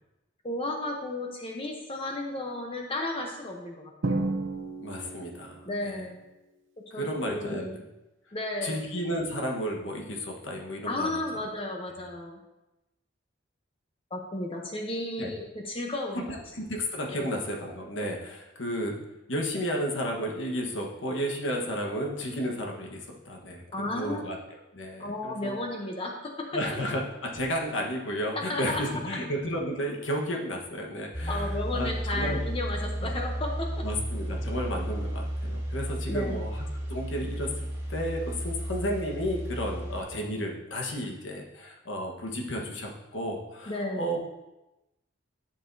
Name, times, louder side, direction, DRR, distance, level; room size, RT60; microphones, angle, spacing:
voice 1, 0.4-4.2 5.6-6.2 6.9-7.8 8.3-8.8 10.9-12.4 14.1-16.3 17.1-17.4 23.7-24.3 25.0-26.5 28.4-28.8 31.3-33.8 36.1-36.4 43.7-44.1, left 2 dB, 30° left, 1 dB, 0.8 m, -33 dB
Drum, 4.0-5.7, right 2 dB, 75° right, 0.8 m, -32 dB
voice 2, 4.8-6.0 6.9-7.8 8.6-11.1 15.2-15.3 16.1-19.0 19.3-23.6 23.9-24.4 24.7-25.6 26.5-32.4 33.0-33.1 33.8-44.3, equal, 75° left, 0 dB, 1.3 m, -33 dB
sound 1, 31.1-40.0, equal, 15° right, 2.6 m, -33 dB
11.0 x 6.9 x 2.7 m, 0.98 s
head